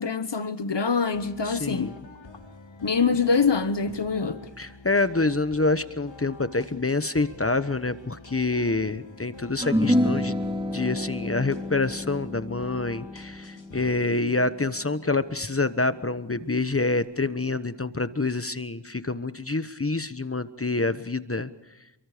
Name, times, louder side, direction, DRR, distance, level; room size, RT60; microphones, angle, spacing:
voice 1, 0.0-1.9 2.8-4.4, left 5 dB, 70° left, 1.3 m, -24 dB
sound 1, 1.1-13.9, left 4 dB, 90° left, 3.0 m, -48 dB
voice 2, 1.4-2.0 4.6-10.4 10.7-21.5, left 3 dB, 30° left, 1.1 m, -27 dB
sound 2, 9.6-16.2, left 1 dB, 10° right, 5.0 m, -29 dB
29.5 x 23.5 x 5.1 m
wide cardioid pair, 50°, 44 cm